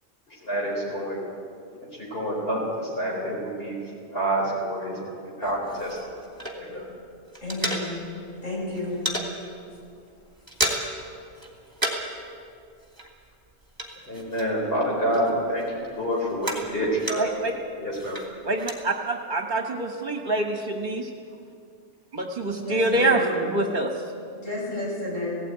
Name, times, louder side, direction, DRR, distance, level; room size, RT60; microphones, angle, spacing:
voice 1, 0.3-1.2 1.9-3.8 4.1-6.2 6.5-6.8 14.1-15.6 15.9-17.3 17.8-18.2, right 1 dB, 50° left, -4 dB, 4.6 m, -28 dB
sound 1, 5.4-6.9 7.2-8.3 8.6-9.3 9.7-9.9 10.2-11.1 11.3-12.2 12.4-14.8 15.1-17.5 17.9-18.8, right 1 dB, 15° right, 2.6 m, -32 dB
voice 2, 7.4-7.9 8.4-9.0 22.6-23.3 24.3-25.4, left 1 dB, 80° left, -5 dB, 7.4 m, -31 dB
voice 3, 17.2-17.5 18.4-21.1 22.1-23.9, right 2 dB, 40° right, 3 dB, 1.5 m, -25 dB
17.0 x 17.0 x 9.5 m, 2.3 s
omnidirectional pair, 1.3 m